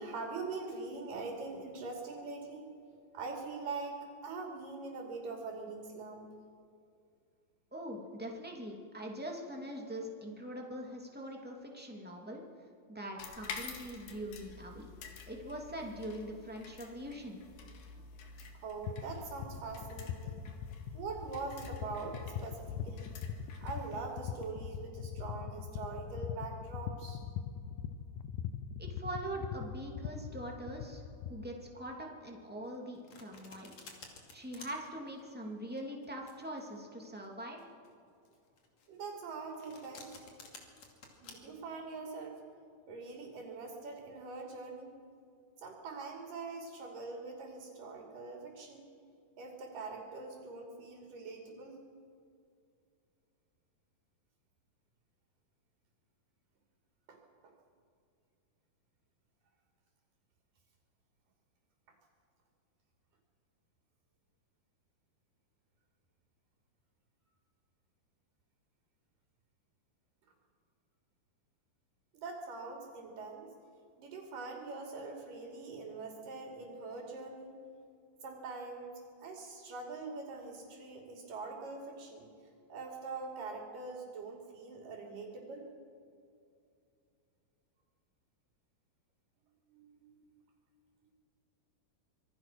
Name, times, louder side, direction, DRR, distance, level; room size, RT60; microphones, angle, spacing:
voice 1, 0.0-2.7 3.1-6.3 18.6-20.4 20.9-23.1 23.6-27.2 38.9-40.2 41.2-42.4 42.9-44.9 45.6-48.8 49.4-51.8 57.1-57.2 57.4-57.5 72.1-73.5 74.0-77.6 78.2-78.9 79.2-82.3 82.7-85.7 89.7-90.3, right 4 dB, 60° right, 0 dB, 4.6 m, -43 dB
voice 2, 7.7-12.4 12.9-14.9 15.3-17.4 28.8-31.0 31.3-33.7 34.3-37.6, right 1 dB, 5° right, 0 dB, 2.0 m, -43 dB
sound 1, 13.2-24.5, left 5 dB, 90° left, 3.9 m, -50 dB
sound 2, 18.8-31.5, left 8 dB, 70° left, 2.2 m, -42 dB
Domestic sounds home sounds, 32.6-41.3, left 4 dB, 50° left, 3.5 m, -54 dB
26.0 x 21.0 x 6.1 m, 2.4 s
omnidirectional pair, 4.3 m